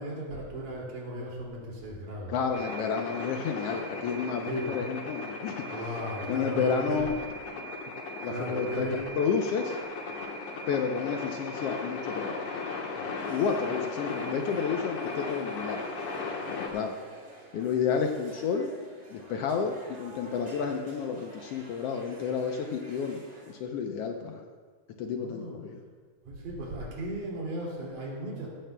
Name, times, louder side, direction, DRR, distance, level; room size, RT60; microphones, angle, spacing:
voice 1, 0.0-2.3 3.7-3.9 4.5-4.7 5.7-7.1 8.3-9.0 25.1-25.6 26.3-28.5, right 1 dB, 85° right, -3 dB, 4.1 m, -36 dB
voice 2, 2.3-5.6 6.3-7.1 8.2-8.9 9.2-9.8 10.7-12.4 12.8-15.8 16.5-17.0 17.5-18.7 19.1-24.4 25.0-25.8, left 6 dB, 80° left, 3 dB, 1.3 m, -31 dB
sound 1, 2.5-16.7, left 3 dB, 55° left, 1.9 m, -37 dB
sound 2, 13.2-23.5, right 1 dB, 20° right, 2.5 m, -51 dB
16.5 x 14.0 x 2.2 m, 1.5 s
omnidirectional pair, 3.6 m